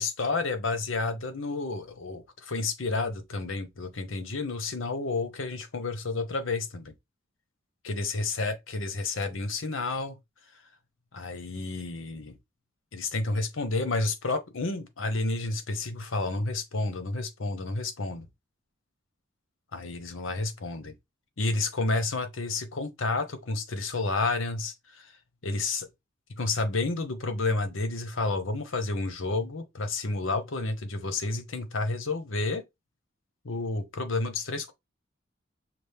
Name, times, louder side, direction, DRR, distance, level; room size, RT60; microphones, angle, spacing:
voice 1, 0.0-6.9 7.8-10.1 11.1-12.4 12.9-18.3 19.7-20.9 21.4-25.1 25.4-25.9 26.4-32.6 33.4-34.7, left 3 dB, 85° left, 1.0 m, -30 dB
6.0 x 2.4 x 3.4 m
head